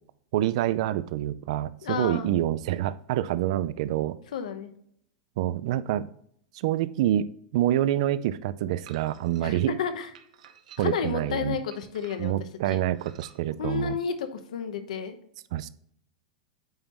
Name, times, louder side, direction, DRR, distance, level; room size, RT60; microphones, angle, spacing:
voice 1, 0.3-4.2 5.4-6.1 6.5-9.7 10.8-11.6 12.2-14.0 15.5-15.7, right 12 dB, 65° right, 16 dB, 0.4 m, -27 dB
voice 2, 1.8-2.3 4.3-4.7 9.4-10.1 10.8-12.8 13.6-15.2, left 7 dB, 90° left, 9 dB, 0.8 m, -31 dB
sound 1, 8.9-9.4 10.1-11.1 11.7-12.4 13.0-13.4, right 9 dB, 80° right, 0.8 m, -51 dB
8.7 x 3.0 x 3.6 m, 0.65 s
supercardioid pair, 145°, 4 cm